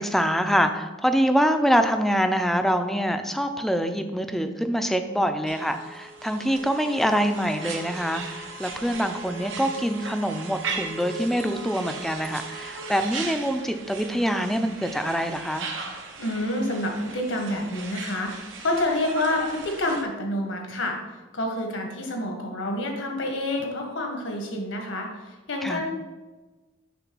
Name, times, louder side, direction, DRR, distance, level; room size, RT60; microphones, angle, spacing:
voice 1, 0.0-15.7 25.6-25.8, equal, ahead, 7 dB, 0.4 m, -25 dB
sound 1, 5.5-20.0, right 4 dB, 80° right, 0.9 m, -38 dB
voice 2, 16.2-21.0 21.3-25.9, left 1 dB, 75° left, 2 dB, 1.4 m, -28 dB
6.9 x 3.3 x 6.0 m, 1.2 s
head